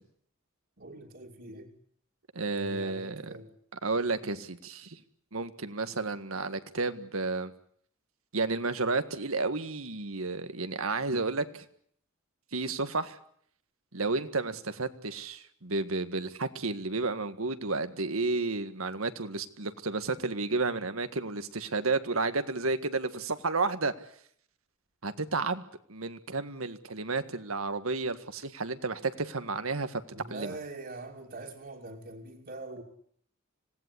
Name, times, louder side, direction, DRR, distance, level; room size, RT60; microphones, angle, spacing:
voice 1, 0.8-1.7 2.4-3.5 30.1-32.8, right 2 dB, 55° right, -5 dB, 3.1 m, -43 dB
voice 2, 2.3-3.3 3.7-5.0 5.3-7.5 8.3-11.6 12.5-13.2 13.9-23.9 25.0-25.6 25.9-30.0 30.3-30.5, right 3 dB, 85° right, 10 dB, 1.8 m, -32 dB
26.0 x 18.0 x 9.8 m, 0.65 s
head